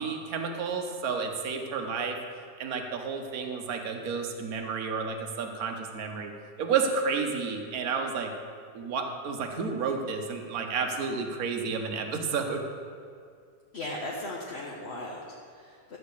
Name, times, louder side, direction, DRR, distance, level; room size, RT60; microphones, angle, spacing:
voice 1, 0.0-2.2 2.6-6.3 6.6-8.3 8.7-12.6, right 5 dB, 55° right, 3 dB, 1.3 m, -31 dB
voice 2, 13.7-16.0, left 1 dB, 40° left, -4 dB, 1.0 m, -37 dB
12.5 x 4.2 x 8.2 m, 2.2 s
omnidirectional pair, 2.2 m